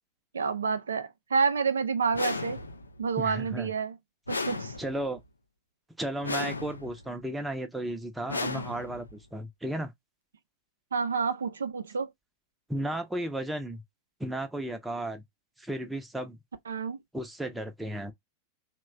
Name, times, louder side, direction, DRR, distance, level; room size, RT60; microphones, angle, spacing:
voice 1, 0.3-2.6 3.0-3.9 4.3-4.7 10.9-12.1 16.7-17.0, right 5 dB, 70° right, 0.4 m, -29 dB
sound 1, 2.1-3.0 4.3-5.2 6.2-7.1 8.3-9.2, left 3 dB, 80° left, 0.4 m, -34 dB
voice 2, 3.2-3.7 4.8-5.2 6.0-9.9 12.7-13.8 14.2-15.2 15.6-16.4 17.1-18.1, right 1 dB, 5° right, 0.6 m, -34 dB
3.0 x 2.2 x 3.5 m
figure-of-eight pair, 90°, 0 cm